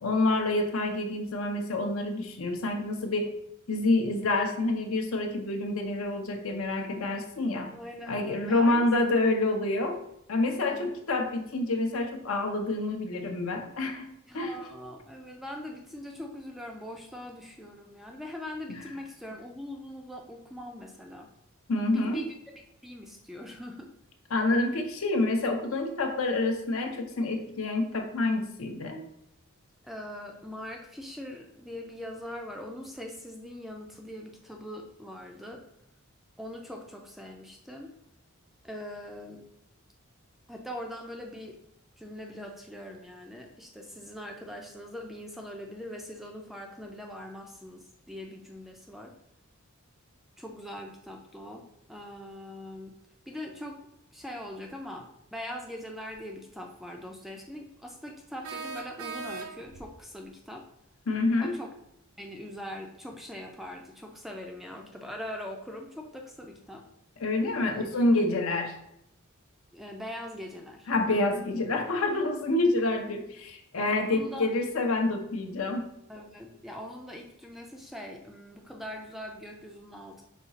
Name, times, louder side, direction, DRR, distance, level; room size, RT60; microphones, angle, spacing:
voice 1, 0.0-3.3 3.7-7.7 8.1-10.0 10.3-14.1 14.3-14.6 18.7-18.8 21.7-22.2 24.3-29.0 61.1-61.6 67.2-68.8 70.9-75.9, left 2 dB, 70° left, 4 dB, 0.6 m, -27 dB
voice 2, 7.7-9.2 10.7-10.9 14.3-21.3 21.9-22.3 22.8-23.9 29.8-35.6 36.4-37.9 38.6-39.4 40.5-41.6 42.0-49.1 50.4-52.9 53.3-53.8 54.1-60.6 61.4-61.7 62.2-66.8 67.6-67.9 69.7-70.9 73.9-74.5 76.1-80.2, left 1 dB, ahead, 1 dB, 0.4 m, -42 dB
sound 1, 56.1-56.2 58.4-59.9, right 4 dB, 70° right, 0.5 m, -38 dB
5.0 x 2.4 x 3.9 m, 0.76 s
head